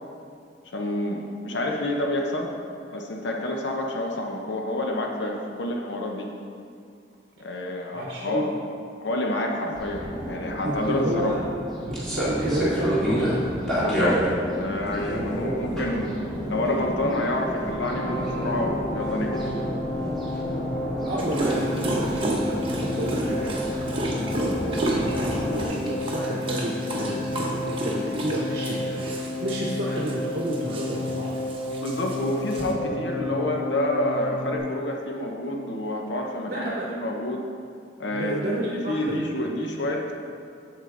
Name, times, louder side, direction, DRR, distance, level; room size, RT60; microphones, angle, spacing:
voice 1, 0.7-2.5 2.9-6.3 7.4-8.6 9.0-11.4 13.7-14.2 14.6-16.1 16.5-19.4 31.8-37.4 38.0-38.4 38.7-40.1, left 1 dB, 80° left, 1 dB, 0.8 m, -28 dB
voice 2, 7.9-8.5 10.6-11.4 11.9-13.5 15.0-16.5 21.0-23.5 23.8-23.9 24.3-31.3 32.9-33.4 36.5-36.9 38.0-39.3, right 1 dB, 55° right, -4 dB, 1.0 m, -31 dB
sound 1, 9.7-25.7, equal, ahead, 2.1 m, -30 dB
sound 2, 17.8-34.6, left 2 dB, 35° left, 1.9 m, -31 dB
Dog, 21.2-32.7, right 1 dB, 30° right, 1.0 m, -33 dB
8.3 x 7.4 x 3.8 m, 2.3 s
head